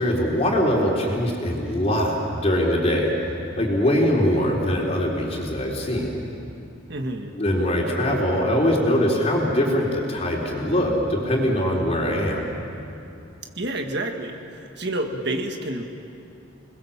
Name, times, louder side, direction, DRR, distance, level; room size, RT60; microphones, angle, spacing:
voice 1, 0.0-3.1 3.6-6.2 7.3-12.5, equal, 30° left, -2 dB, 4.0 m, -22 dB
voice 2, 6.9-7.3 13.6-14.4 14.8-15.8, right 1 dB, 55° right, 4 dB, 1.7 m, -28 dB
28.0 x 21.0 x 7.4 m, 2.6 s
head